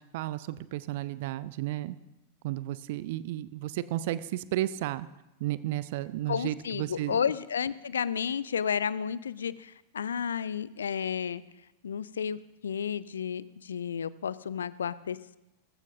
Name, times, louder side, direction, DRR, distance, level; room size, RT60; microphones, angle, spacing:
voice 1, 0.0-2.0 2.4-5.1 5.4-7.2, right 15 dB, 50° right, 17 dB, 0.4 m, -33 dB
voice 2, 6.3-11.4 11.8-15.4, left 7 dB, 70° left, 18 dB, 0.4 m, -32 dB
20.0 x 14.5 x 2.6 m, 0.94 s
figure-of-eight pair, 90°, 0 cm